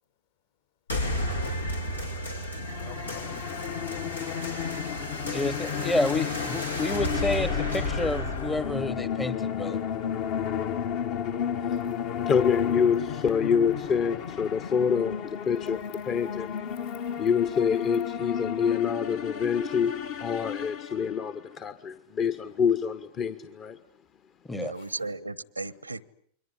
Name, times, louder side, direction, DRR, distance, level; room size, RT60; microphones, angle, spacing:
sound 1, 0.9-9.9, left 1 dB, 80° left, 2.7 m, -33 dB
sound 2, 2.6-21.4, left 8 dB, 45° left, 1.6 m, -33 dB
voice 1, 2.8-4.7 24.7-25.0, left 8 dB, 65° left, 7 dB, 7.1 m, -46 dB
voice 2, 5.3-9.8 24.5-24.7, left 2 dB, 10° left, 14 dB, 1.1 m, -29 dB
voice 3, 12.3-16.6 17.2-19.9 20.2-23.8, left 7 dB, 30° left, 12 dB, 1.3 m, -26 dB
voice 4, 24.5-26.0, right 3 dB, 80° right, 22 dB, 1.1 m, -35 dB
28.5 x 23.0 x 8.3 m, 0.62 s
figure-of-eight pair, 90°, 0 cm